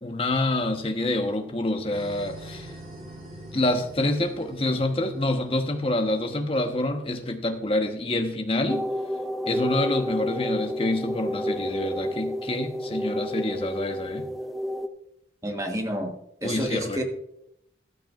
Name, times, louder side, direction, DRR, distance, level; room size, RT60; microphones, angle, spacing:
voice 1, 0.0-2.7 3.5-8.8 9.5-14.3 16.4-17.0, left 1 dB, 30° left, 5 dB, 1.0 m, -27 dB
sound 1, 1.9-6.8, right 1 dB, 40° right, 4.6 m, -44 dB
sound 2, 8.7-14.9, left 1 dB, ahead, 0.5 m, -30 dB
voice 2, 15.4-16.1 16.4-17.0, equal, 20° right, 3 dB, 1.2 m, -29 dB
13.5 x 12.0 x 2.4 m, 0.78 s
head